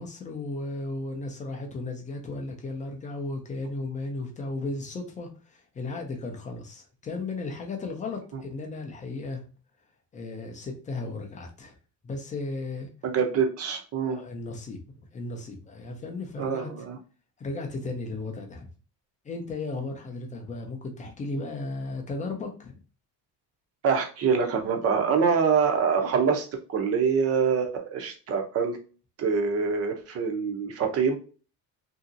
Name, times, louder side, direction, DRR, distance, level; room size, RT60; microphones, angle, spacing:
voice 1, 0.0-9.4 10.1-11.7 12.0-12.9 14.0-14.8 15.1-16.7 17.4-18.7 19.2-22.8, left 3 dB, 20° left, 3 dB, 0.3 m, -35 dB
voice 2, 13.0-14.2 16.4-17.0 23.8-28.8 29.2-31.2, right 6 dB, 35° right, 4 dB, 0.5 m, -25 dB
2.8 x 2.7 x 2.5 m, 0.36 s
cardioid pair, 165°, 42 cm